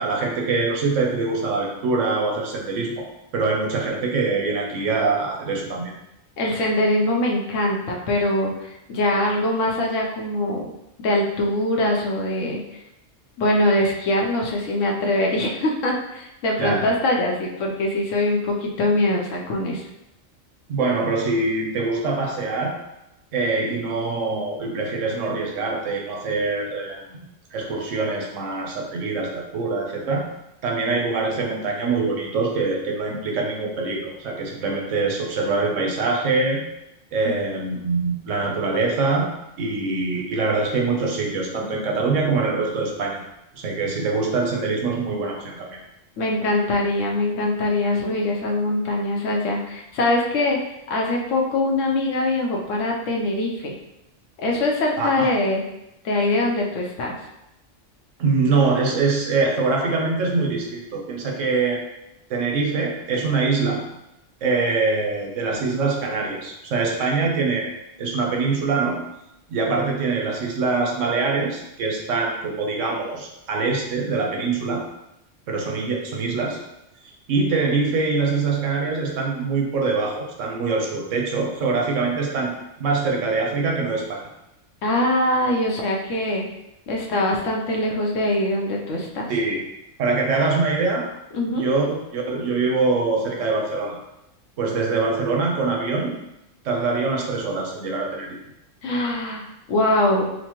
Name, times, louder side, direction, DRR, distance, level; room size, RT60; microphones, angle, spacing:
voice 1, 0.0-3.1 3.3-6.0 16.6-16.8 20.7-22.7 23.3-30.3 30.6-36.6 37.1-39.3 39.6-43.3 43.5-45.8 55.0-55.3 58.2-61.8 62.3-63.8 64.4-67.7 68.0-69.0 69.5-74.8 75.5-76.6 77.0-82.5 82.8-84.2 89.3-89.6 90.0-91.0 91.6-94.0 94.6-96.1 96.6-98.4, right 3 dB, 85° right, 0 dB, 1.1 m, -24 dB
voice 2, 6.4-10.7 11.0-12.6 13.4-19.8 37.2-37.3 46.2-50.6 50.9-53.7 54.4-55.6 56.0-57.1 84.8-86.4 86.9-89.3 91.3-91.6 98.8-100.2, left 1 dB, 85° left, -1 dB, 1.0 m, -23 dB
4.1 x 2.2 x 2.9 m, 0.88 s
omnidirectional pair, 1.3 m